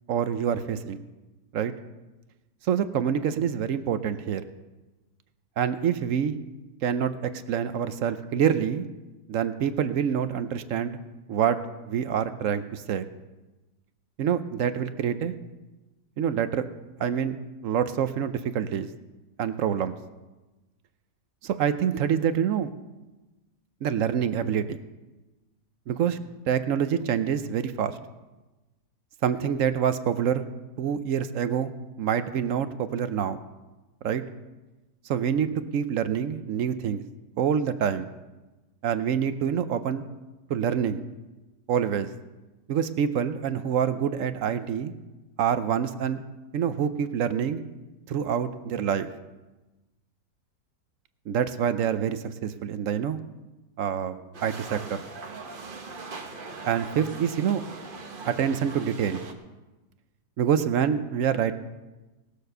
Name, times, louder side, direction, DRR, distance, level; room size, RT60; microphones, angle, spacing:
voice 1, 0.1-1.0 1.5-1.7 2.7-4.4 5.6-6.3 6.8-8.8 9.3-11.0 11.3-11.6 11.9-13.1 14.2-15.3 16.2-16.6 17.0-17.4 17.6-18.9 19.4-20.0 21.4-22.7 23.8-24.8 25.9-26.2 26.5-28.0 29.2-30.4 30.8-31.7 32.0-33.4 34.0-34.2 35.0-37.0 37.4-38.1 38.8-40.0 40.5-41.0 41.7-42.1 42.7-44.9 45.4-46.2 46.5-47.6 48.1-49.1 51.3-53.2 53.8-55.0 56.7-57.6 58.3-59.2 60.4-61.5, right 8 dB, 65° right, 11 dB, 0.9 m, -26 dB
sound 1, 54.3-59.3, right 4 dB, 35° right, 1.0 m, -40 dB
18.0 x 6.6 x 6.6 m, 1.1 s
omnidirectional pair, 1.8 m